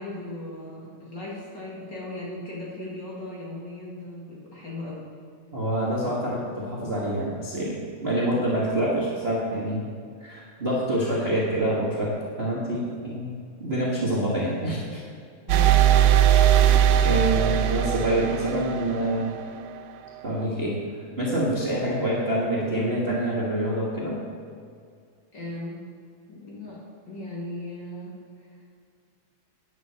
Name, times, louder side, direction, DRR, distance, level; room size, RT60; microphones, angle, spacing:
voice 1, 0.0-5.1 15.5-16.6 25.3-25.8 26.3-26.8 27.1-28.2, left 1 dB, 40° left, -5 dB, 2.6 m, -38 dB
voice 2, 5.5-9.9 10.2-15.0 17.0-19.3 20.2-20.8 21.2-24.2, right 1 dB, 30° right, -6 dB, 1.2 m, -26 dB
sound 1, 15.5-19.2, right 10 dB, 90° right, 1.4 m, -19 dB
10.5 x 6.4 x 6.8 m, 2.2 s
omnidirectional pair, 3.3 m